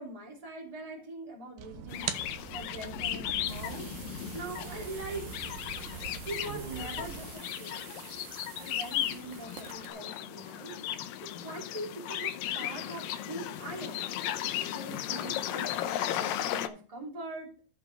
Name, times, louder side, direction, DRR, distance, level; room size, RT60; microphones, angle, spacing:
voice 1, 0.0-2.1 2.5-4.0 4.3-5.4 6.3-7.8 8.6-10.7 11.4-14.1 14.7-17.5, right 2 dB, 10° right, -1 dB, 2.1 m, -42 dB
sound 1, 1.6-7.3, right 9 dB, 70° right, 2.1 m, -42 dB
sound 2, 1.9-16.7, left 11 dB, 80° left, 2.0 m, -36 dB
sound 3, 3.5-9.9, right 9 dB, 85° right, 3.3 m, -49 dB
14.5 x 5.0 x 4.6 m, 0.41 s
omnidirectional pair, 4.8 m